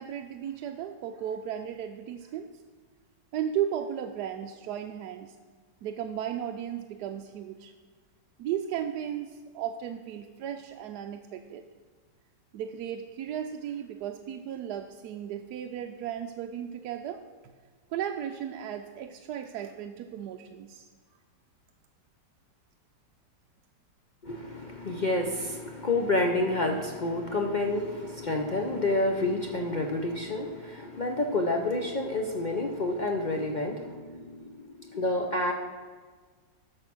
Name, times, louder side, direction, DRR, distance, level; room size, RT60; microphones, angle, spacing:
voice 1, 0.0-2.5 3.3-5.3 5.8-7.7 8.4-11.6 12.5-17.2 17.9-20.9, right 9 dB, 75° right, 5 dB, 1.1 m, -35 dB
voice 2, 24.2-35.5, left 2 dB, 65° left, 2 dB, 0.4 m, -29 dB
13.0 x 4.9 x 6.1 m, 1.5 s
omnidirectional pair, 1.9 m